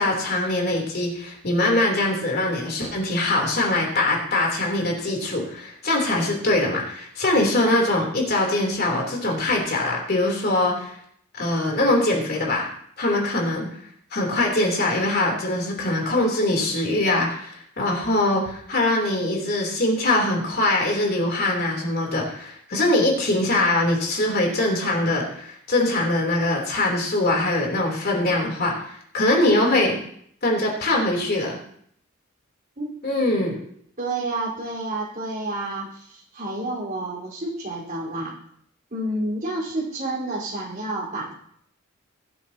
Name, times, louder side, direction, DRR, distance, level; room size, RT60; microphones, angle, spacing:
voice 1, 0.0-10.9 11.3-12.7 13.0-13.7 14.1-28.7 29.1-30.0 30.4-31.6 33.0-33.6, left 2 dB, 50° left, 0 dB, 3.5 m, -22 dB
voice 2, 34.0-38.4 38.9-41.3, right 2 dB, 40° right, -4 dB, 4.5 m, -29 dB
22.0 x 8.2 x 2.9 m, 0.67 s
head